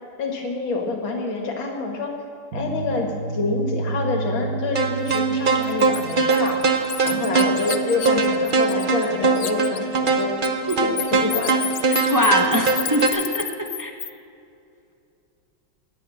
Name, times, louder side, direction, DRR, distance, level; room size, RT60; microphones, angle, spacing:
voice 1, 0.2-2.1 2.5-6.6 7.0-10.3 10.8-11.7, left 3 dB, 60° left, 2 dB, 2.6 m, -27 dB
sound 1, 2.5-6.7, right 3 dB, 45° right, 1.3 m, -31 dB
sound 2, 4.7-13.1, right 4 dB, 80° right, 0.4 m, -22 dB
Bird, 5.1-5.2 5.6-9.1 9.3-14.1, left 11 dB, 90° left, 0.7 m, -31 dB
voice 2, 12.1-13.9, equal, 20° right, 2 dB, 0.5 m, -23 dB
17.5 x 10.5 x 6.4 m, 2.5 s
omnidirectional pair, 2.4 m